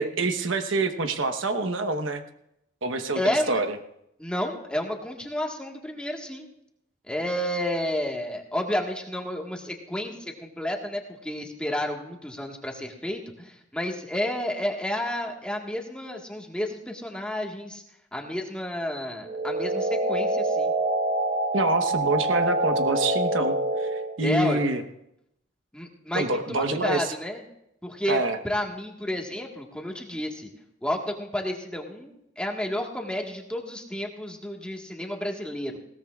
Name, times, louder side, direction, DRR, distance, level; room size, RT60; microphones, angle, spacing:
voice 1, 0.0-2.2 2.8-3.7 21.5-24.8 26.1-27.1 28.1-28.4, right 2 dB, 85° right, 8 dB, 1.1 m, -26 dB
voice 2, 3.1-3.6 4.2-6.5 7.1-17.8 18.1-20.7 24.2-24.7 25.7-27.4 27.8-30.5 30.8-35.8, left 1 dB, 5° left, 1 dB, 1.5 m, -31 dB
sound 1, 19.2-24.2, right 1 dB, 50° right, 1.4 m, -26 dB
20.0 x 17.0 x 2.4 m, 0.79 s
head